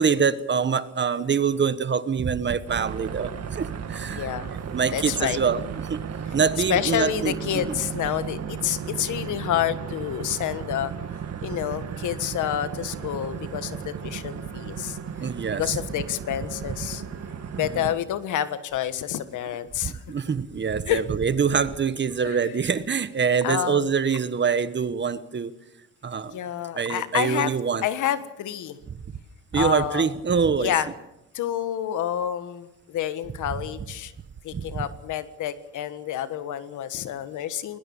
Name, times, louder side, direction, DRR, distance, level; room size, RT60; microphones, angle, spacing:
voice 1, 0.0-4.3 4.7-6.0 6.3-7.8 15.2-15.8 17.5-17.9 19.8-25.5 26.0-26.4 26.8-27.8 29.5-30.7 33.5-33.6 34.5-34.8, right 6 dB, 35° right, 14 dB, 1.3 m, -25 dB
sound 1, 2.7-18.0, right 7 dB, 55° right, 2.1 m, -35 dB
voice 2, 4.1-4.5 4.9-5.4 6.7-10.9 11.4-15.0 15.6-17.0 17.6-20.0 20.9-21.0 22.2-22.4 23.4-23.8 26.3-27.5 27.8-28.8 29.5-30.1 30.6-30.9 31.3-34.1 34.4-37.8, left 11 dB, 80° left, 12 dB, 1.5 m, -28 dB
20.5 x 20.0 x 7.2 m, 0.90 s
cardioid pair, 90°, 30 cm